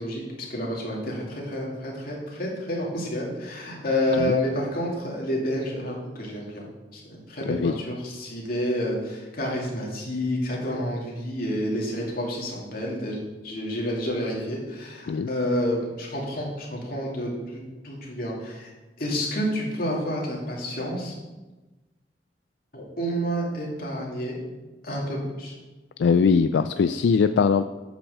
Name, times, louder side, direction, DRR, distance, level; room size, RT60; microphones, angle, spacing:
voice 1, 0.0-18.7 19.0-21.2 22.7-24.4 24.8-25.5, equal, 55° left, -3 dB, 2.6 m, -29 dB
voice 2, 7.4-7.7 15.1-15.3 26.0-27.7, left 5 dB, 80° left, 11 dB, 0.3 m, -21 dB
8.2 x 6.0 x 6.5 m, 1.2 s
head